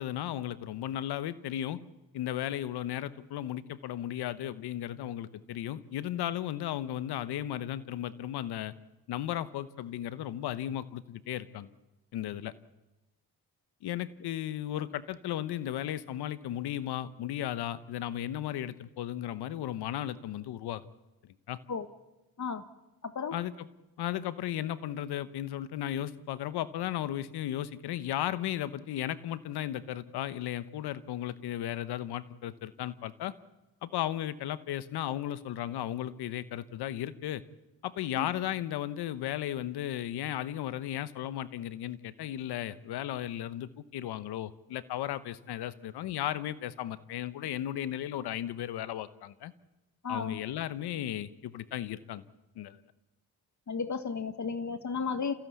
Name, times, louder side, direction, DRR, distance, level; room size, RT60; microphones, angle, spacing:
voice 1, 0.0-1.8 2.1-8.7 9.1-11.7 12.1-12.5 13.8-20.8 21.5-21.6 23.3-23.7 24.0-33.3 33.8-37.4 37.8-49.5 50.1-52.2 52.5-52.8, left 12 dB, 85° left, 15 dB, 1.0 m, -35 dB
voice 2, 23.0-23.3 38.2-38.3 50.0-50.4 53.7-55.3, left 5 dB, 45° left, 10 dB, 1.7 m, -33 dB
28.0 x 15.5 x 8.3 m, 1.0 s
supercardioid pair, 55°, 38 cm